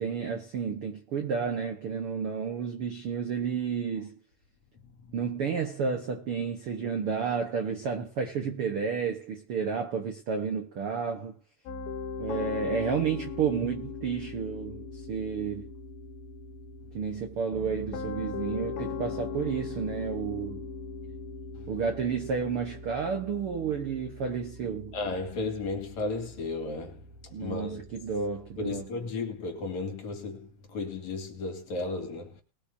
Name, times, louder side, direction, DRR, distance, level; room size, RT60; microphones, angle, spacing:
voice 1, 0.0-4.2 5.1-11.4 12.2-15.7 16.9-20.7 21.7-25.0 27.3-28.9, right 6 dB, 80° right, 1.2 m, -31 dB
voice 2, 4.9-5.3 21.6-21.7 24.9-27.9 28.6-32.4, left 3 dB, 50° left, 3.2 m, -34 dB
Piano, 11.7-28.8, left 5 dB, 75° left, 3.1 m, -40 dB
21.0 x 8.9 x 2.8 m
omnidirectional pair, 4.4 m